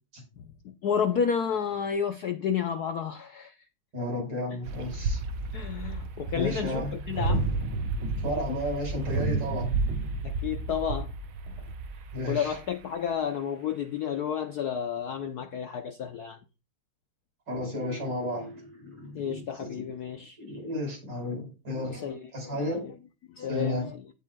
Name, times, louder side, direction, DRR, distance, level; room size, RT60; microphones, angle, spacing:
voice 1, 0.4-3.5 5.5-7.5 10.2-11.1 11.5-11.6 12.3-16.4 19.1-20.4 21.8-22.9 23.3-24.0, left 7 dB, 65° left, 1.0 m, -31 dB
voice 2, 3.9-5.2 6.3-7.2 8.2-9.7 12.1-12.6 17.5-19.9 20.4-22.8 23.4-23.9, left 1 dB, 55° right, 5.4 m, -33 dB
sound 1, 4.6-12.8, right 3 dB, 75° right, 1.8 m, -31 dB
16.0 x 5.6 x 2.3 m
omnidirectional pair, 2.4 m